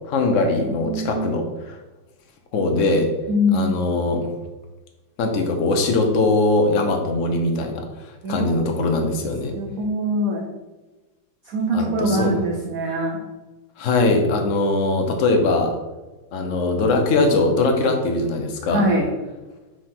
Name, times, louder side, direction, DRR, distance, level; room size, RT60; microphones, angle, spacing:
voice 1, 0.1-1.8 2.5-3.1 3.5-4.3 5.2-9.5 11.7-12.3 13.8-15.7 16.3-18.8, left 2 dB, 50° left, 3 dB, 1.1 m, -21 dB
voice 2, 0.6-1.3 3.3-3.7 8.2-8.7 9.5-10.5 11.4-13.2 18.7-19.1, equal, 55° right, -2 dB, 1.2 m, -23 dB
4.9 x 4.6 x 5.8 m, 1.2 s
omnidirectional pair, 2.1 m